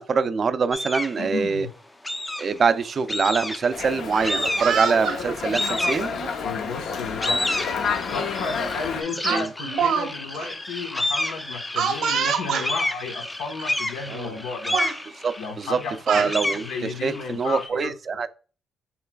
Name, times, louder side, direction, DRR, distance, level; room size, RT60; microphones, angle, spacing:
voice 1, 0.0-1.7 2.4-6.1 9.3-9.5 15.2-15.8 16.1-18.3, right 5 dB, 45° right, 0.4 m, -24 dB
sound 1, 0.7-1.2 2.0-2.7 3.1-3.8 4.2-4.9 5.5-6.5 6.9-17.7, left 1 dB, 10° left, 0.5 m, -30 dB
voice 2, 1.2-1.7 6.4-7.4 8.1-14.8 15.4-17.9, left 5 dB, 90° left, 1.0 m, -33 dB
Dog, 3.7-9.0, left 6 dB, 70° left, 0.6 m, -30 dB
Speech, 4.0-5.2 6.1-6.3 7.6-7.7 8.1-8.3 9.2-10.1 10.3-10.5 11.8-12.7 13.6-13.7 14.1-14.4 14.7-15.0 15.7-16.3, right 6 dB, 80° right, 1.0 m, -26 dB
5.6 x 3.1 x 2.3 m
cardioid pair, 90°, 0 cm